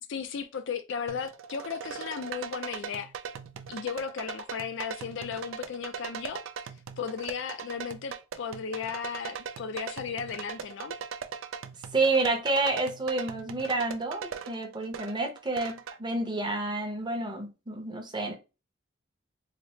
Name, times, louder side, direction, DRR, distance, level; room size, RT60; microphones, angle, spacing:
voice 1, 0.1-3.1 3.7-6.4 7.0-10.9, left 6 dB, 65° left, 0.4 m, -35 dB
sound 1, 1.1-16.0, right 7 dB, 75° right, 0.4 m, -40 dB
voice 2, 11.9-18.3, right 2 dB, 20° right, 0.7 m, -29 dB
4.0 x 2.0 x 3.1 m
head